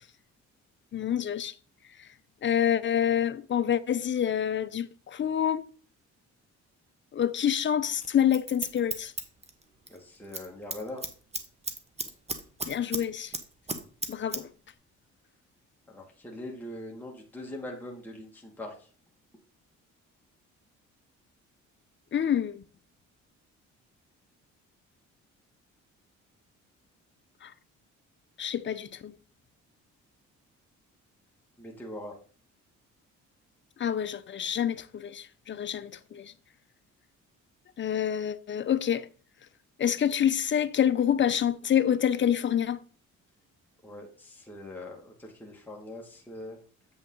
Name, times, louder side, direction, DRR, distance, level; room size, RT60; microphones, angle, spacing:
voice 1, 0.9-1.5 2.4-5.7 7.1-9.1 12.7-13.3 14.1-14.5 22.1-22.6 27.4-27.5 28.4-29.1 33.8-36.3 37.8-39.1 39.8-42.8, left 9 dB, 40° left, 0.6 m, -27 dB
Scissors, 8.0-10.0 10.2-10.5 10.7-13.0 13.3-14.4 14.7-14.8, right 3 dB, 20° right, 1.2 m, -34 dB
voice 2, 9.9-11.0 15.9-18.9 31.6-32.2 43.8-46.6, left 1 dB, 5° left, 1.7 m, -42 dB
8.1 x 5.3 x 3.8 m
cardioid pair, 90°, 30 cm